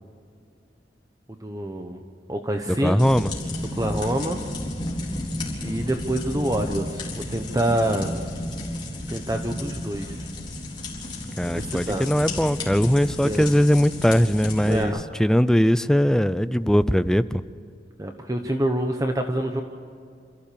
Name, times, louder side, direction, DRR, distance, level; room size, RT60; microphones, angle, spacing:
voice 1, 1.4-2.0 2.3-3.0 3.7-4.4 5.6-8.1 9.1-10.3 11.5-12.1 13.2-13.4 14.6-15.0 18.0-19.6, right 1 dB, 20° right, 5 dB, 1.0 m, -26 dB
voice 2, 2.7-3.3 11.4-14.9 15.2-17.4, equal, 5° left, 13 dB, 0.4 m, -20 dB
sound 1, 3.0-14.8, left 1 dB, 25° left, 4.1 m, -32 dB
27.0 x 15.0 x 6.9 m, 2.4 s
head